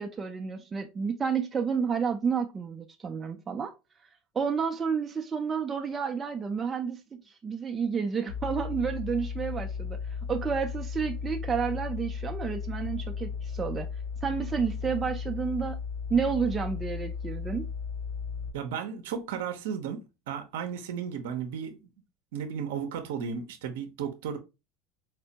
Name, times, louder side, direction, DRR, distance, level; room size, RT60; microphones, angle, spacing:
voice 1, 0.0-3.7 4.3-10.0 10.3-13.9 14.2-15.8 16.1-17.6, right 6 dB, 25° right, 0.4 m, -30 dB
sound 1, 8.3-18.5, left 6 dB, 60° left, 1.5 m, -35 dB
voice 2, 18.5-21.8 22.3-24.4, right 7 dB, 80° right, 0.6 m, -34 dB
4.4 x 2.1 x 2.7 m
supercardioid pair, 95°, 0 cm